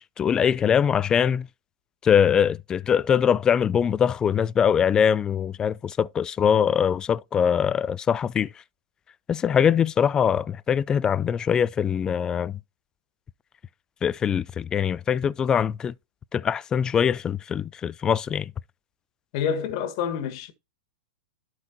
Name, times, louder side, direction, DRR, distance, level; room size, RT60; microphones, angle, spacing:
voice 1, 0.0-1.5 2.0-8.5 9.3-12.6 14.0-15.9 16.3-18.5, left 8 dB, 20° left, 0.3 m, -22 dB
voice 2, 19.3-20.5, left 7 dB, 55° left, 1.6 m, -27 dB
12.0 x 4.5 x 2.9 m
hypercardioid pair, 120°, 4 cm